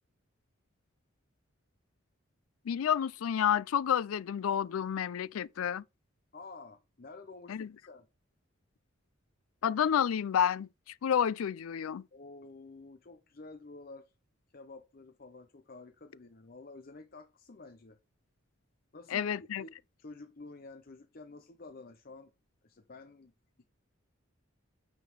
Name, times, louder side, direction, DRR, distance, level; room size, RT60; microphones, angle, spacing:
voice 1, 2.7-5.8 7.5-7.7 9.6-12.0 19.1-19.6, left 8 dB, 85° left, 0.4 m, -30 dB
voice 2, 6.3-8.1 12.1-14.1 14.5-18.0 18.9-22.3 22.6-23.3, left 3 dB, 45° left, 0.6 m, -50 dB
9.1 x 3.7 x 6.3 m
head